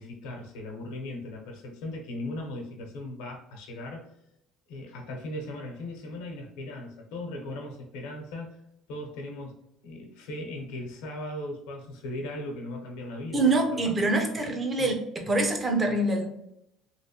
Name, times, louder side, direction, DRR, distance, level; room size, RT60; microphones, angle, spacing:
voice 1, 0.0-4.1 4.7-8.6 8.9-13.9 14.8-14.9, left 1 dB, 90° left, 1 dB, 0.8 m, -38 dB
voice 2, 13.3-16.2, right 2 dB, 20° right, 3 dB, 0.7 m, -25 dB
3.1 x 3.0 x 2.9 m, 0.79 s
cardioid pair, 140°, 0 cm